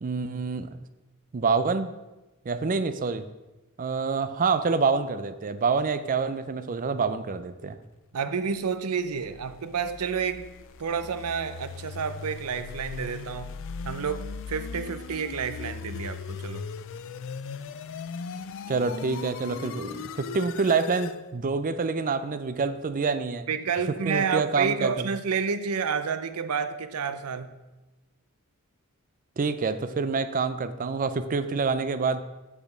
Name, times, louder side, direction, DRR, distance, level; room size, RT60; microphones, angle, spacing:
voice 1, 0.0-0.8 1.3-1.9 2.5-3.3 3.8-7.8 18.7-23.5 24.1-25.1 29.4-32.2, right 4 dB, 40° right, 12 dB, 0.4 m, -27 dB
voice 2, 8.1-10.5 10.8-13.6 13.8-16.7 23.5-27.6, right 6 dB, 85° right, 11 dB, 0.6 m, -30 dB
sound 1, 9.0-21.2, left 5 dB, 60° left, 0.4 m, -39 dB
8.7 x 5.0 x 5.1 m, 1.1 s
head